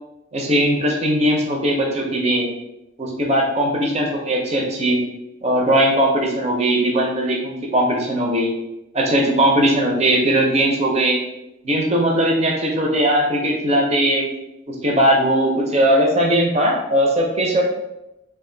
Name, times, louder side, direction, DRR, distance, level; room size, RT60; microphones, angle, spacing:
voice 1, 0.3-2.5 3.0-5.0 5.4-8.5 8.9-11.2 11.6-14.2 14.7-17.6, right 1 dB, 30° right, -1 dB, 0.6 m, -19 dB
3.5 x 2.5 x 3.8 m, 0.90 s
head